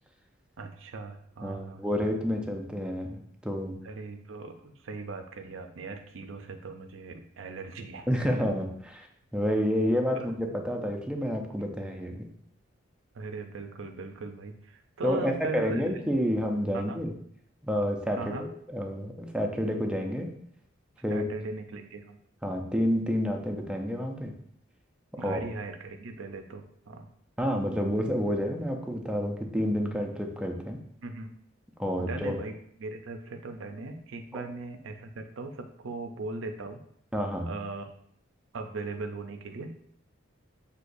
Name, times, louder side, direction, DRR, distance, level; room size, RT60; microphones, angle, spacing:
voice 1, 0.6-1.8 3.8-8.1 10.2-10.3 13.1-15.8 16.7-17.0 18.2-18.5 21.1-22.2 25.2-27.1 31.0-31.3 32.0-32.5 32.8-36.8 37.5-37.8 38.5-39.9, right 3 dB, 75° right, 6 dB, 0.5 m, -39 dB
voice 2, 1.4-3.8 8.1-9.1 9.3-12.3 15.0-17.1 17.6-20.3 21.0-21.3 22.4-24.3 25.1-25.4 27.4-30.8 31.8-32.4 37.1-37.5, equal, 5° right, 2 dB, 0.5 m, -29 dB
6.2 x 2.8 x 2.6 m, 0.67 s
head